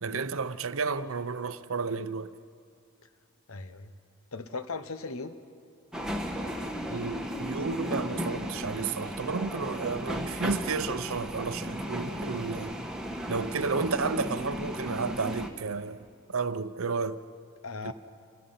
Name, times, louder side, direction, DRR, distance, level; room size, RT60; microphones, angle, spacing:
voice 1, 0.0-2.3 6.9-12.7 13.3-17.2 17.8-17.9, right 4 dB, 70° right, 0.7 m, -32 dB
voice 2, 3.5-3.9 4.3-5.4 17.6-17.9, left 3 dB, 75° left, 1.0 m, -38 dB
sound 1, 5.9-15.5, equal, 5° right, 1.2 m, -35 dB
29.0 x 16.0 x 5.7 m
head